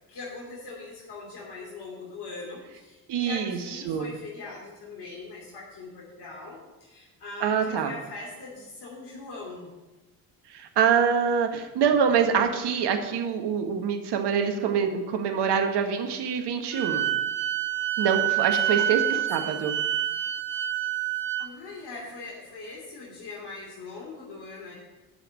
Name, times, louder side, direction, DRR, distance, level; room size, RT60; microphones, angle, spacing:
voice 1, 0.1-9.7 18.4-19.5 21.4-24.7, left 3 dB, 60° left, -3 dB, 3.0 m, -41 dB
voice 2, 3.1-4.1 7.4-7.9 10.5-17.1 18.0-19.0 19.3-19.7, right 7 dB, 60° right, 5 dB, 1.6 m, -25 dB
Wind instrument woodwind instrument, 16.7-21.5, right 12 dB, 25° right, 1.4 m, -27 dB
9.4 x 5.8 x 8.2 m, 1.1 s
hypercardioid pair, 50°, 46 cm